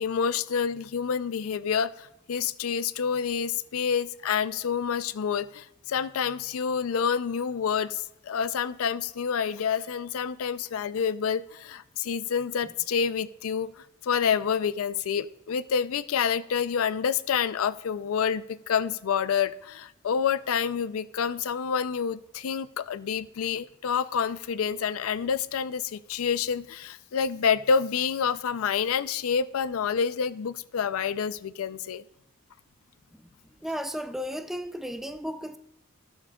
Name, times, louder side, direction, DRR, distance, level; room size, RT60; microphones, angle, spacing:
voice 1, 0.0-32.0, left 7 dB, 85° left, 0.4 m, -28 dB
voice 2, 33.6-35.6, equal, ahead, 0.3 m, -34 dB
13.0 x 7.4 x 2.3 m
head